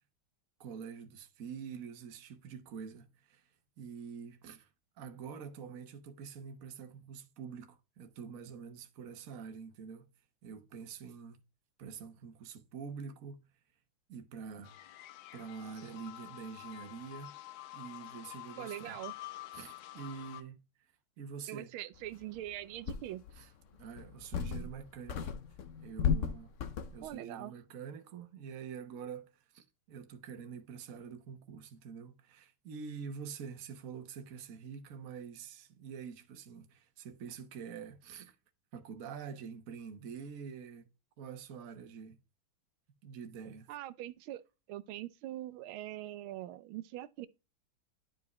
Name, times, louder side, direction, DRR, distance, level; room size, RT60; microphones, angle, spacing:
voice 1, 0.6-3.5 3.8-4.7 5.0-10.1 10.4-11.4 11.8-13.4 14.1-14.8 15.3-17.3 17.7-19.0 19.5-20.6 21.2-21.7 23.3-25.3 25.8-26.5 26.9-38.4 38.7-40.9 41.2-42.2 43.0-43.7, right 6 dB, 50° right, 1.2 m, -46 dB
sound 1, 14.6-20.4, left 16 dB, 90° left, 1.6 m, -48 dB
voice 2, 18.6-19.1 21.5-23.2 27.0-27.5 43.7-44.4 44.7-47.3, right 14 dB, 90° right, 1.5 m, -42 dB
sound 2, 22.2-22.3 22.9-23.4 24.0-24.8 25.1-27.1, left 7 dB, 65° left, 0.7 m, -34 dB
11.0 x 4.8 x 3.0 m
omnidirectional pair, 2.2 m